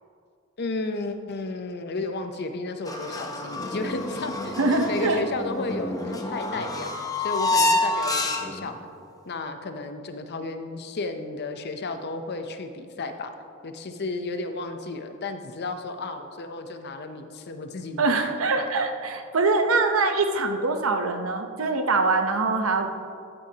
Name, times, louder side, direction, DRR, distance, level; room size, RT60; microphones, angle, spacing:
voice 1, 0.6-6.9 7.2-8.7 9.3-13.3 13.6-18.6, left 3 dB, 55° left, 7 dB, 0.7 m, -33 dB
sound 1, 2.9-8.7, left 2 dB, 20° left, 0.8 m, -28 dB
voice 2, 4.6-5.2 18.0-22.9, right 3 dB, 85° right, 6 dB, 0.8 m, -23 dB
13.5 x 9.0 x 2.9 m, 2.3 s
head